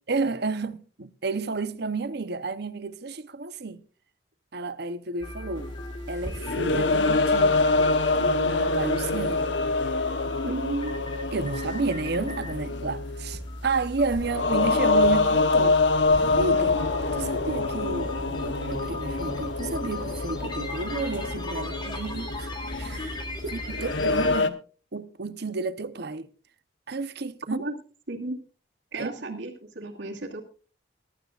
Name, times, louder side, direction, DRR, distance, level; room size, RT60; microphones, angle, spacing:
voice 1, 0.1-3.8 4.5-5.7 6.1-7.6 8.1-9.5 11.3-15.8 16.1-16.8 17.2-22.5 22.8-23.2 23.5-24.6 24.9-26.3 26.9-27.6 29.0-29.4, right 3 dB, 60° right, 0.9 m, -31 dB
sound 1, 5.2-24.4, left 1 dB, 25° left, 2.7 m, -37 dB
sound 2, 5.6-5.7 6.2-13.4 14.1-24.5, left 3 dB, 80° left, 1.1 m, -25 dB
voice 2, 10.4-10.9 27.5-27.7 28.1-28.4 28.9-30.4, right 2 dB, 80° right, 2.4 m, -33 dB
23.0 x 11.5 x 2.5 m
head